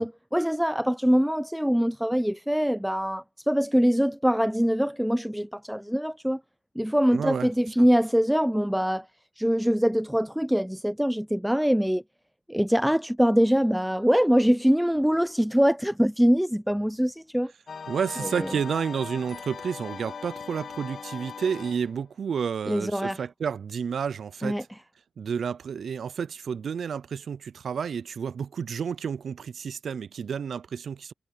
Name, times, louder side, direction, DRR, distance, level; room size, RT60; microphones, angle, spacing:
voice 1, 0.0-6.4 6.8-9.1 9.4-12.0 12.5-17.5 18.4-18.5 22.7-23.2 24.4-24.6, equal, ahead, 0.4 m, -23 dB
voice 2, 7.1-7.5 17.9-24.6 25.2-31.1, right 7 dB, 60° right, 0.4 m, -30 dB
sound 1, 17.7-22.0, left 6 dB, 55° left, 1.6 m, -39 dB
cardioid pair, 95°, 0 cm